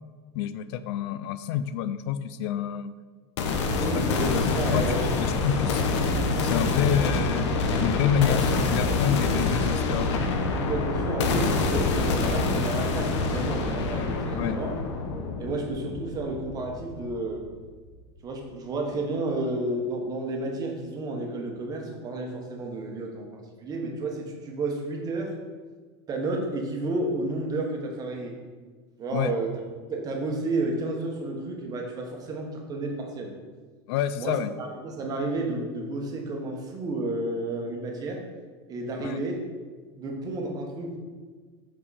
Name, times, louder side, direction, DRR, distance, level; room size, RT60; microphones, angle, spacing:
voice 1, 0.3-2.9 3.7-4.2 4.5-5.8 6.4-7.5 7.8-10.1 14.3-14.6 29.1-29.3 33.9-34.5 39.0-39.2, left 8 dB, 65° left, 13 dB, 0.4 m, -28 dB
sound 1, 3.4-17.3, left 3 dB, 85° left, 0.9 m, -26 dB
voice 2, 3.7-5.2 6.9-7.3 8.2-8.6 10.6-14.7 15.4-17.4 18.2-23.3 23.6-25.4 26.1-28.3 29.0-29.5 29.9-33.3 34.2-38.2 38.7-39.4 40.0-41.0, right 2 dB, 25° right, 1 dB, 1.2 m, -31 dB
5.6 x 5.4 x 4.1 m, 1.5 s
supercardioid pair, 145°, 14 cm